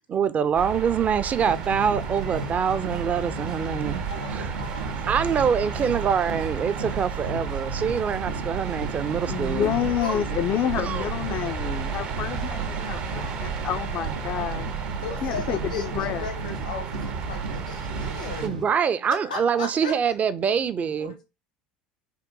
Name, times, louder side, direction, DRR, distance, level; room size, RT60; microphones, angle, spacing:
voice 1, 0.1-4.0 4.3-4.5 5.1-9.7 10.9-11.1 18.4-21.1, right 7 dB, 35° right, 0.4 m, -25 dB
sound 1, 0.5-18.5, right 6 dB, 60° right, 0.9 m, -33 dB
sound 2, 1.4-18.6, right 2 dB, 85° right, 0.6 m, -35 dB
voice 2, 4.1-5.0 5.9-6.0 6.4-6.5 10.0-10.2 15.0-18.5 19.2-19.9 21.0-21.2, left 4 dB, 85° left, 0.9 m, -36 dB
voice 3, 9.3-14.7 15.2-16.3, left 10 dB, 45° left, 0.3 m, -29 dB
3.7 x 2.5 x 3.7 m
hypercardioid pair, 70°, 4 cm